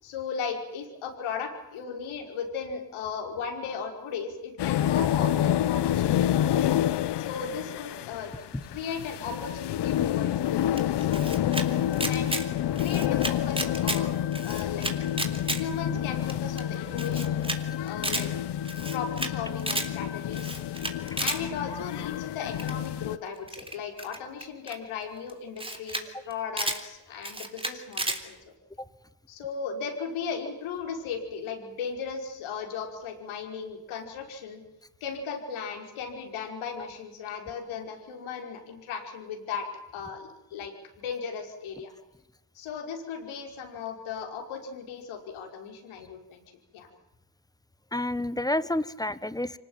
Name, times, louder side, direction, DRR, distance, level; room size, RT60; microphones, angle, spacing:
voice 1, 0.0-6.7 7.2-8.4 8.7-11.4 12.1-12.4 12.8-14.1 14.4-14.9 15.6-17.5 17.8-18.3 18.9-20.6 21.2-28.4 29.3-34.6 35.0-39.7 39.9-41.9 42.6-46.4 46.7-46.9, left 6 dB, 70° left, 3 dB, 5.4 m, -36 dB
sound 1, 4.6-23.2, left 11 dB, 55° left, 1.0 m, -28 dB
Camera, 10.8-11.6 11.9-12.4 12.7-14.0 14.3-15.6 15.9-16.0 16.3-16.4 16.6-16.7 17.0-17.6 17.9-18.2 18.6-19.3 19.6-19.9 20.3-21.4 22.6-22.9 23.5-24.7 25.3-25.4 25.6-26.0 26.3-26.8 27.2-28.2, right 1 dB, 10° right, 3.5 m, -32 dB
voice 2, 47.9-49.6, left 1 dB, 10° left, 16 dB, 1.3 m, -30 dB
25.0 x 19.0 x 9.1 m, 0.92 s
supercardioid pair, 65°, 49 cm